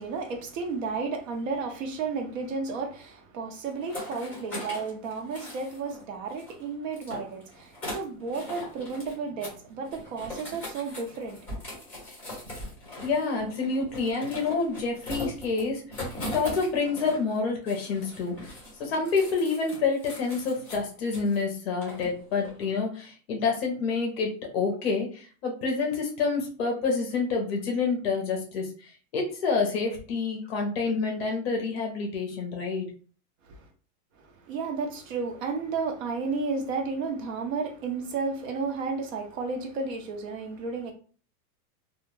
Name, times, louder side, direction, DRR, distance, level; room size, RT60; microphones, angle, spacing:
voice 1, 0.0-11.5 33.5-33.7 34.2-40.9, right 4 dB, 55° right, 0.8 m, -32 dB
sound 1, 3.7-6.0 6.3-9.2 9.4-9.6 9.8-17.4 17.7-21.4 21.8-22.7, left 1 dB, 5° left, 1.0 m, -40 dB
voice 2, 13.0-15.8 16.2-18.5 18.8-32.9, left 4 dB, 40° left, 0.6 m, -28 dB
2.3 x 2.2 x 3.1 m
supercardioid pair, 175°, 46 cm